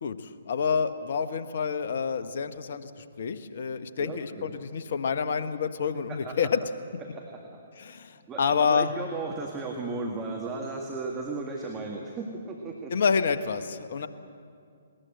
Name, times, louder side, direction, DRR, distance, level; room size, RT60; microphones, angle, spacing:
voice 1, 0.0-6.6 7.8-8.9 12.9-14.1, left 6 dB, 55° left, 11 dB, 1.2 m, -28 dB
voice 2, 4.0-4.6 6.3-6.4 7.0-7.6 7.9-8.0 8.3-12.9, right 3 dB, 20° right, 0 dB, 2.0 m, -35 dB
20.0 x 19.5 x 7.9 m, 2.4 s
figure-of-eight pair, 130°, 0 cm